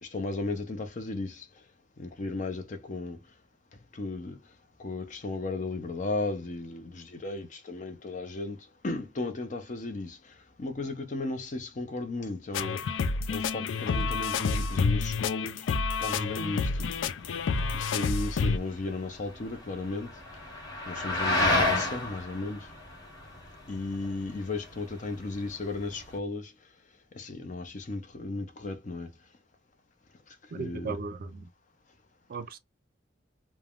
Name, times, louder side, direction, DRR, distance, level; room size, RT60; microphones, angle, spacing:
voice 1, 0.0-1.5 2.0-3.2 3.9-4.4 4.8-10.3 10.6-12.8 13.3-15.7 16.0-17.0 17.7-20.1 20.9-22.7 23.7-26.5 27.1-29.1 30.5-31.0, left 2 dB, 45° left, 0.6 m, -35 dB
sound 1, 12.5-18.6, left 4 dB, 85° left, 0.4 m, -29 dB
sound 2, 16.3-26.2, left 2 dB, 20° left, 1.3 m, -33 dB
voice 2, 30.5-31.5 32.3-32.6, right 4 dB, 50° right, 0.4 m, -36 dB
3.2 x 2.1 x 2.4 m
head